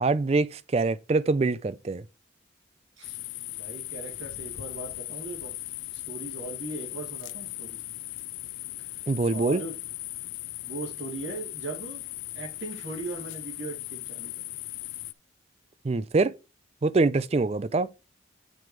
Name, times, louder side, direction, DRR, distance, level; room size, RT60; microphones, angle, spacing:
voice 1, 0.0-2.0 9.1-9.6 15.8-16.3 16.8-17.9, right 3 dB, 35° right, 0.4 m, -24 dB
sound 1, 3.0-15.1, left 18 dB, 85° left, 0.4 m, -38 dB
voice 2, 3.5-5.5 5.9-7.8 9.3-9.7 10.6-12.0 12.3-14.6, right 2 dB, 90° right, 2.7 m, -38 dB
9.1 x 4.6 x 4.7 m
head